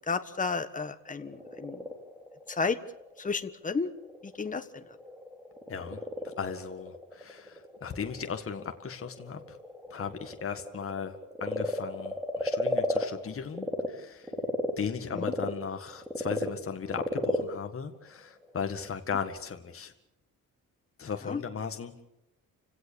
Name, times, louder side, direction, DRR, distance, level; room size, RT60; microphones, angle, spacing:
voice 1, 0.1-1.8 2.6-2.8 3.2-3.9 4.4-4.6 15.2-15.3 21.3-21.4, left 4 dB, 20° left, 9 dB, 1.4 m, -31 dB
Frog, 1.0-13.9 14.2-18.9, equal, 5° right, 3.1 m, -35 dB
voice 2, 5.7-9.6 9.9-14.3 14.8-19.9 21.0-21.9, left 6 dB, 40° left, 6 dB, 1.9 m, -37 dB
29.5 x 17.5 x 7.0 m, 0.87 s
wide cardioid pair, 145°, 36 cm